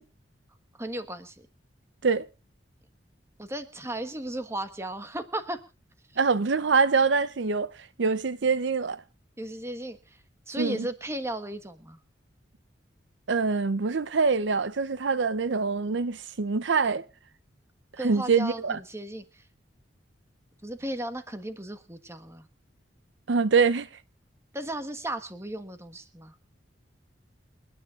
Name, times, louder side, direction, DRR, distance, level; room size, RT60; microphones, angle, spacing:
voice 1, 0.7-1.4 3.4-5.6 9.4-10.2 10.5-12.0 18.0-19.4 20.6-22.5 24.5-26.3, right 1 dB, 15° right, 1.4 m, -35 dB
voice 2, 6.2-7.7 8.0-9.0 10.6-10.8 13.3-17.1 18.0-18.8 23.3-23.9, right 4 dB, 75° right, 0.6 m, -24 dB
28.5 x 10.0 x 2.5 m
head